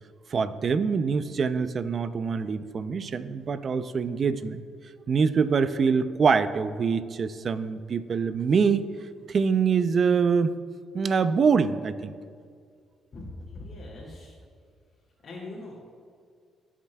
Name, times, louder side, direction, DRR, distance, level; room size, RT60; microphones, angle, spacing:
voice 1, 0.3-4.6 5.1-8.9 9.3-10.5 10.9-12.1, right 5 dB, 50° right, 12 dB, 0.5 m, -24 dB
voice 2, 13.1-14.4 15.2-15.8, left 2 dB, 50° left, -7 dB, 2.5 m, -41 dB
17.5 x 7.4 x 2.3 m, 2.1 s
cardioid pair, 90°, 0 cm